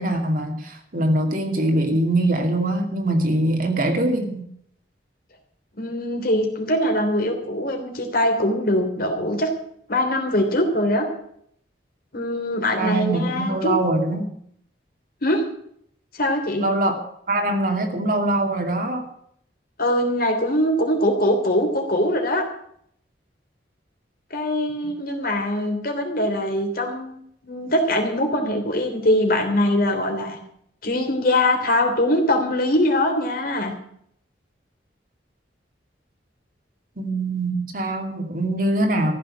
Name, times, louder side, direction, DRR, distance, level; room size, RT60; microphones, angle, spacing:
voice 1, 0.0-4.4 12.8-14.3 16.6-16.9 17.3-19.1 37.0-39.1, right 1 dB, 50° right, 4 dB, 2.5 m, -23 dB
voice 2, 5.8-9.5 9.9-11.1 12.1-13.7 15.2-15.4 16.1-16.6 19.8-22.4 24.3-27.2 27.5-30.4 30.8-33.7, left 1 dB, 55° left, 3 dB, 3.2 m, -22 dB
14.5 x 6.9 x 9.7 m, 0.68 s
head